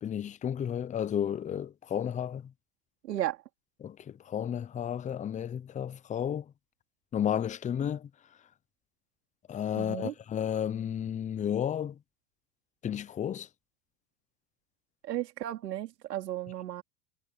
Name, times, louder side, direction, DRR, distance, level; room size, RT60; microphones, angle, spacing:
voice 1, 0.0-2.5 3.8-6.5 7.1-8.1 9.5-12.0 12.8-13.5, left 9 dB, 15° left, 0.5 m, -32 dB
voice 2, 3.1-3.4 9.8-10.1 15.0-16.8, right 13 dB, 85° right, 3.0 m, -34 dB
hypercardioid pair, 105°, 47 cm